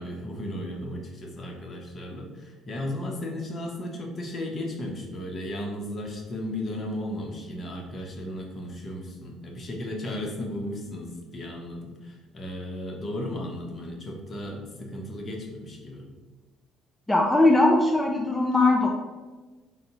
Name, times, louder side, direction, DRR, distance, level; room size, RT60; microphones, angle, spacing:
voice 1, 0.0-16.1, left 1 dB, 40° left, 1 dB, 0.9 m, -35 dB
voice 2, 17.1-18.9, left 2 dB, 15° left, 0 dB, 0.5 m, -20 dB
4.0 x 2.7 x 3.9 m, 1.3 s
hypercardioid pair, 60°, 0 cm